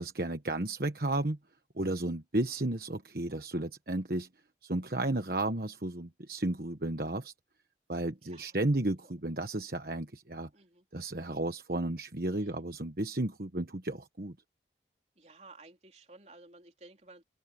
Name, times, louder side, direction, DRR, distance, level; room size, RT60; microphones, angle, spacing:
voice 1, 0.0-1.4 1.7-4.3 4.6-7.3 7.9-10.5 10.9-14.3, right 2 dB, 55° right, 1.3 m, -33 dB
voice 2, 8.2-8.6 9.0-9.1 10.5-10.9 12.3-12.7 15.2-17.2, right 2 dB, 40° right, 3.6 m, -55 dB
open air
head